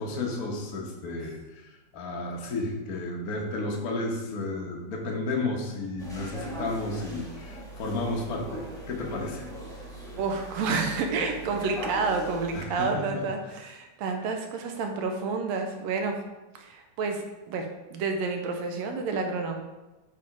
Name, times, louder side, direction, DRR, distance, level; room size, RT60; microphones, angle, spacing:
voice 1, 0.0-9.5 12.5-13.2, left 2 dB, 85° left, 0 dB, 0.8 m, -32 dB
sound 1, 6.0-12.6, right 1 dB, 5° left, 0.3 m, -39 dB
voice 2, 10.2-16.2 16.6-19.6, right 4 dB, 75° right, 4 dB, 1.8 m, -30 dB
6.9 x 4.8 x 4.7 m, 1.1 s
omnidirectional pair, 3.4 m